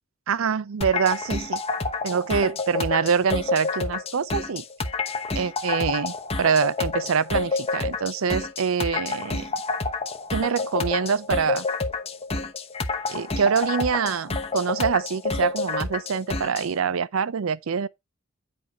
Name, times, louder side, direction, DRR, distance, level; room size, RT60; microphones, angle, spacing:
voice 1, 0.3-1.6 2.0-4.6 5.4-9.5 10.3-11.7 13.1-17.9, right 6 dB, 90° right, 0.5 m, -25 dB
sound 1, 0.8-16.7, left 3 dB, 30° left, 0.8 m, -29 dB
9.5 x 5.1 x 4.1 m
head